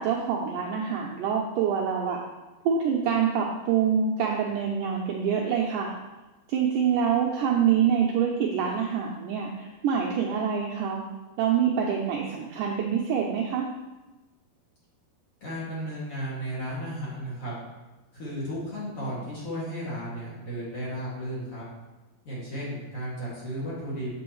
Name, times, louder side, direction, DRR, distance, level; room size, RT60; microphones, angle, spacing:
voice 1, 0.0-2.2 2.7-5.9 6.5-11.0 11.4-13.7, right 7 dB, 90° right, -1 dB, 1.8 m, -26 dB
voice 2, 15.4-17.5 18.1-21.6 22.2-24.1, equal, 40° left, -7 dB, 2.7 m, -34 dB
7.8 x 7.7 x 3.1 m, 1.1 s
omnidirectional pair, 4.6 m